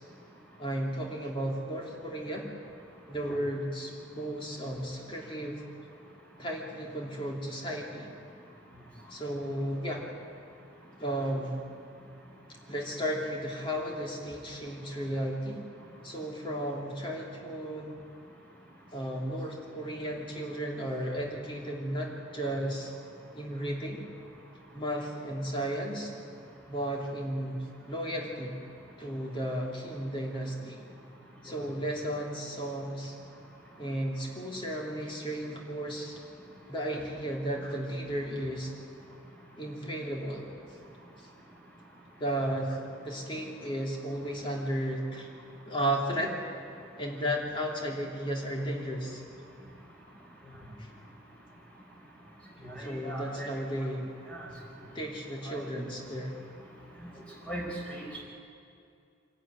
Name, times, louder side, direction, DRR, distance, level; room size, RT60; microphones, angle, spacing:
voice 1, 0.6-2.5 3.1-5.6 6.4-8.1 9.1-10.1 11.0-11.6 12.7-15.6 16.0-17.9 18.9-22.9 23.3-24.0 24.7-26.1 26.7-28.6 29.0-30.8 31.4-33.1 33.8-36.2 36.7-38.7 39.6-40.5 41.2-41.3 42.2-42.8 43.0-45.3 45.7-46.4 47.0-49.2 50.8-50.9 52.8-54.1 54.9-56.4, right 1 dB, 25° left, -1 dB, 3.0 m, -34 dB
voice 2, 52.6-53.5 54.3-54.5 55.5-55.8 57.5-57.6 57.9-58.2, right 1 dB, 5° left, -3 dB, 4.8 m, -39 dB
24.5 x 11.5 x 9.6 m, 2.4 s
head